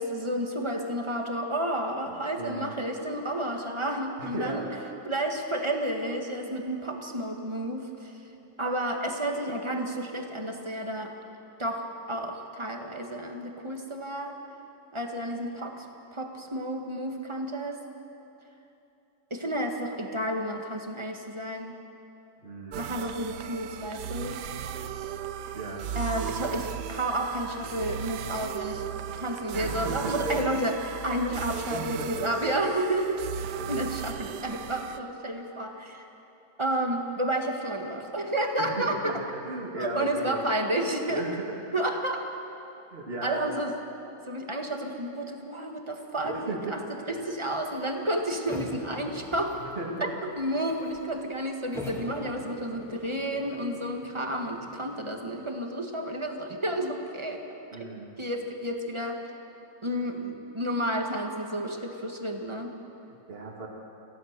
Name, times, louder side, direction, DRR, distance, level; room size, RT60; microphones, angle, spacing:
voice 1, 0.0-4.7 5.1-8.2 8.6-11.1 11.6-14.4 14.9-15.9 16.1-17.8 19.3-21.7 22.8-24.4 25.9-28.9 29.2-33.3 33.7-36.1 36.6-39.2 39.8-41.3 41.7-42.2 43.2-43.7 44.3-46.8 47.1-49.6 50.0-57.4 57.8-57.9 58.2-59.2 59.8-62.7, right 1 dB, 15° right, 2 dB, 1.7 m, -31 dB
voice 2, 2.1-2.7 4.2-4.7 22.4-22.8 25.5-25.9 29.5-30.4 31.7-32.3 33.6-33.8 38.6-39.2 39.4-40.4 41.1-41.5 42.9-43.5 46.2-46.8 47.1-47.3 49.6-50.1 57.7-58.1 63.1-63.7, right 2 dB, 35° right, -2 dB, 2.4 m, -36 dB
sound 1, 22.7-35.0, right 9 dB, 70° right, 1.2 m, -36 dB
sound 2, 48.5-50.0 50.3-51.1 51.7-55.0, left 1 dB, ahead, 2.8 m, -42 dB
28.0 x 16.0 x 6.8 m, 2.9 s
omnidirectional pair, 1.9 m